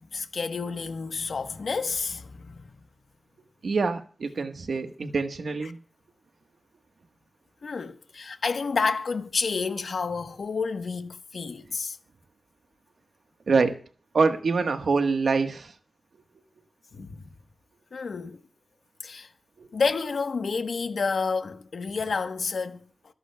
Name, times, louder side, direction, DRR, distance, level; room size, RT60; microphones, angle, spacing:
voice 1, 0.0-2.7 5.6-5.7 7.6-12.0 16.9-17.3 17.9-18.4 19.0-19.3 19.7-22.8, left 4 dB, 75° left, 1.2 m, -30 dB
voice 2, 3.6-5.8 13.5-13.7 14.1-15.7 19.6-19.7, right 4 dB, 75° right, 1.4 m, -25 dB
26.0 x 11.0 x 2.3 m
wide cardioid pair, 105°, 0 cm